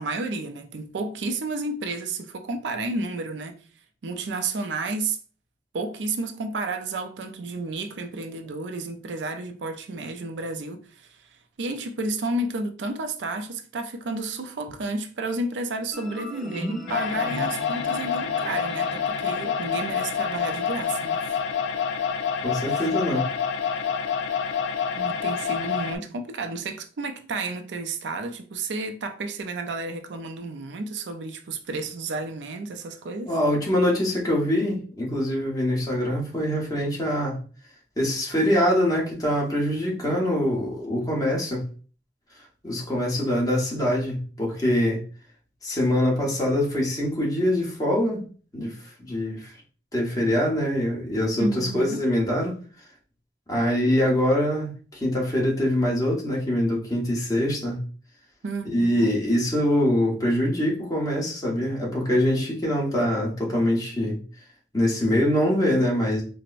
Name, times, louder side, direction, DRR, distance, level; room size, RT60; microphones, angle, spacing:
voice 1, 0.0-3.6 4.0-5.2 5.7-11.1 11.6-21.3 22.7-22.9 25.0-33.3 51.4-52.0 58.4-59.2, right 2 dB, 85° right, 0.5 m, -31 dB
sound 1, 15.9-23.0, equal, ahead, 0.5 m, -40 dB
sound 2, 16.9-26.0, left 6 dB, 80° left, 0.4 m, -27 dB
voice 2, 22.4-23.2 33.3-37.4 38.0-41.6 42.6-45.0 45.6-48.2 48.5-48.7 49.0-49.5 49.9-52.5 53.5-57.8 58.6-64.2 64.7-66.2, left 1 dB, 20° left, 1.1 m, -24 dB
4.5 x 2.1 x 2.5 m
head